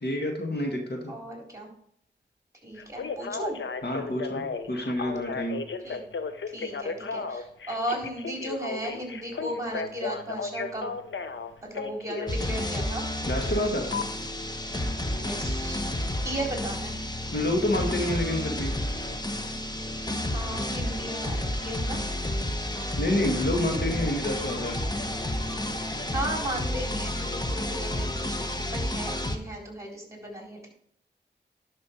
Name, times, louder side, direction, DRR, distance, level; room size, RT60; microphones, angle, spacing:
voice 1, 0.0-1.1 3.8-5.6 13.3-13.9 17.3-18.7 23.0-24.8, left 1 dB, 60° left, 2 dB, 2.1 m, -28 dB
voice 2, 1.1-1.7 2.6-3.6 5.8-6.0 6.5-10.9 11.6-13.0 15.0-15.9 16.2-17.0 20.3-22.0 26.1-30.7, right 1 dB, 15° right, -1 dB, 4.2 m, -35 dB
Telephone, 2.8-12.4 13.9-14.0, left 5 dB, 85° left, 0.8 m, -34 dB
sound 1, 12.3-29.4, left 1 dB, 20° left, 1.3 m, -31 dB
11.0 x 6.2 x 4.6 m, 0.71 s
cardioid pair, 45°, 19 cm